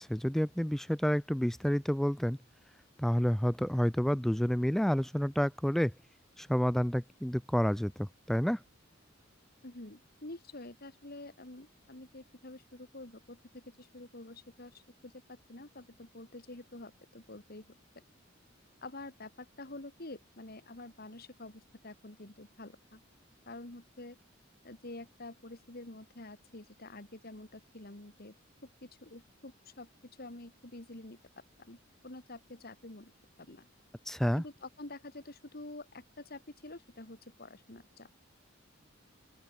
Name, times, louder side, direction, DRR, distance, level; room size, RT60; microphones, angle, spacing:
voice 1, 0.0-2.4 3.0-5.9 6.4-8.6 34.1-34.4, equal, ahead, 0.4 m, -29 dB
voice 2, 9.6-15.1 15.5-17.6 18.8-23.0 23.5-24.2 24.6-28.3 28.6-31.2 31.6-33.1 33.4-33.7 34.3-38.1, left 2 dB, 50° left, 2.8 m, -48 dB
open air
head